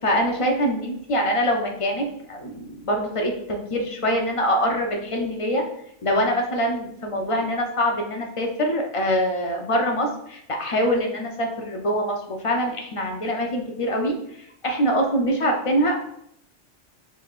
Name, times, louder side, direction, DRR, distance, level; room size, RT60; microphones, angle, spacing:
voice 1, 0.0-5.6 6.0-14.1 14.6-16.0, equal, 45° left, 2 dB, 0.4 m, -24 dB
4.7 x 3.4 x 2.4 m, 0.73 s
omnidirectional pair, 1.2 m